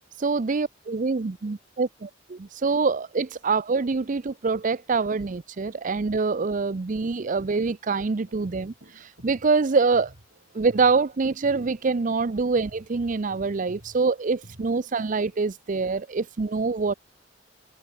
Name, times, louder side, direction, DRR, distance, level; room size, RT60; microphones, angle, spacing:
voice 1, 0.2-8.7 9.0-10.1 10.5-16.9, right 4 dB, 45° right, 0.5 m, -25 dB
sound 1, 8.3-15.3, equal, 60° right, 7.6 m, -51 dB
head